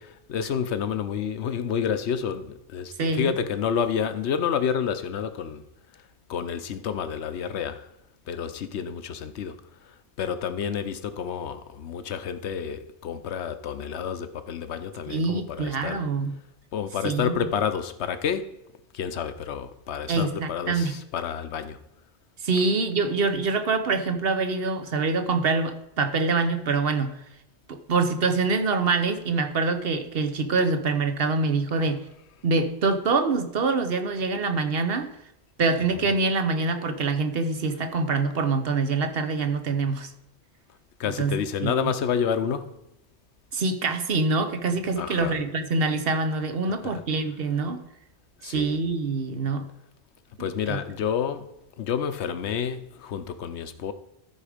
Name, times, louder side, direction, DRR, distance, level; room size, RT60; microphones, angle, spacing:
voice 1, 0.0-5.6 5.9-7.9 8.3-16.1 16.7-18.6 18.9-21.8 31.8-31.9 35.8-36.1 41.0-42.8 45.0-45.4 46.8-47.0 48.4-48.8 50.4-53.9, left 7 dB, 75° left, 1.0 m, -29 dB
voice 2, 3.0-3.3 15.1-16.4 17.0-17.3 20.1-21.0 22.4-27.1 27.7-32.0 32.4-35.1 35.6-40.1 41.2-41.9 43.5-47.8 48.4-49.7 50.7-50.8, right 4 dB, 60° right, 1.1 m, -25 dB
14.0 x 4.9 x 5.0 m
omnidirectional pair, 1.2 m